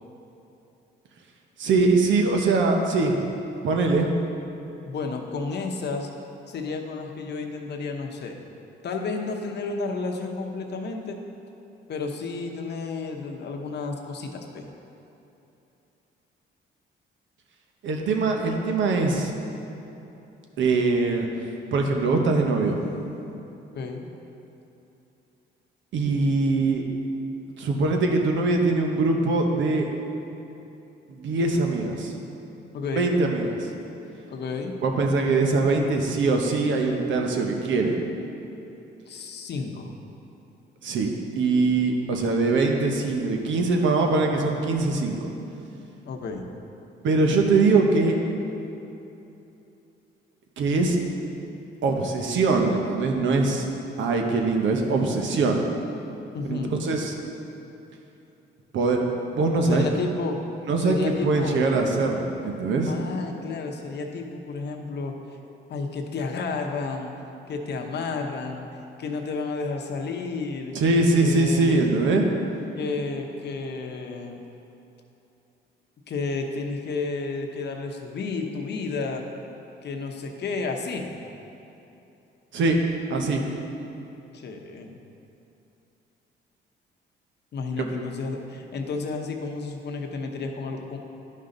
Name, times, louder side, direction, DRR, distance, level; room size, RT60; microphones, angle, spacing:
voice 1, 1.6-3.1 3.6-4.1 17.8-19.3 20.6-21.3 21.7-22.8 25.9-26.8 27.5-29.9 31.1-32.1 33.0-33.7 34.8-38.0 40.8-45.3 47.0-48.2 50.6-51.0 51.8-53.7 54.0-55.7 56.4-57.1 58.7-59.1 59.3-59.9 60.6-62.9 70.7-72.3 82.5-82.8 83.1-83.4, right 3 dB, 75° right, 2 dB, 1.0 m, -22 dB
voice 2, 4.9-6.1 6.5-8.4 8.8-11.2 11.9-14.7 23.7-24.1 32.7-33.1 34.3-34.7 39.1-39.9 46.0-46.5 56.3-56.7 59.7-60.4 60.8-61.5 62.9-65.2 65.7-67.1 67.5-68.7 69.0-70.7 71.2-71.8 72.8-74.4 76.1-79.3 79.8-81.1 84.3-85.0 87.5-91.0, left 4 dB, 60° left, 3 dB, 0.9 m, -31 dB
11.0 x 5.5 x 3.9 m, 2.9 s
cardioid pair, 90°, 20 cm